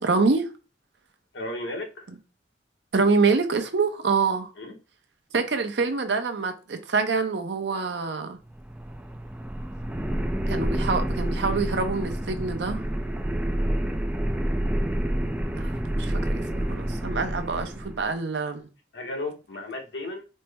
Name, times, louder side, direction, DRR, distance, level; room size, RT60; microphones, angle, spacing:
voice 1, 0.0-0.5 2.9-4.5 5.3-8.4 10.5-12.8 15.6-18.7, right 4 dB, 70° right, 0.6 m, -26 dB
voice 2, 1.3-2.1 4.6-4.8 18.9-20.2, left 2 dB, 80° left, 1.1 m, -34 dB
sound 1, 8.5-18.0, right 1 dB, 10° right, 0.3 m, -28 dB
4.3 x 2.0 x 3.3 m
head